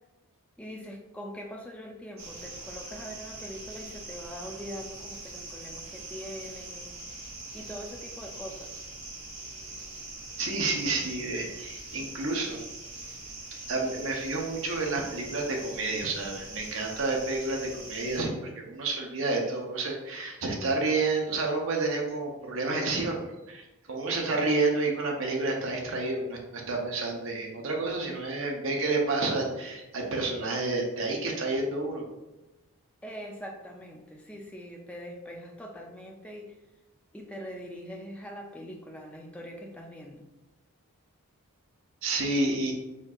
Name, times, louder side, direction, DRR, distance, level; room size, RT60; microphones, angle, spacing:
voice 1, 0.6-6.9 7.2-8.8 33.0-36.6 37.1-40.3, equal, 5° left, 0 dB, 0.4 m, -42 dB
sound 1, 2.2-18.2, right 2 dB, 40° right, 1.3 m, -43 dB
voice 2, 10.4-12.6 13.7-32.0 42.0-42.7, right 3 dB, 60° right, 0 dB, 0.7 m, -30 dB
4.3 x 2.7 x 2.4 m, 1.0 s
head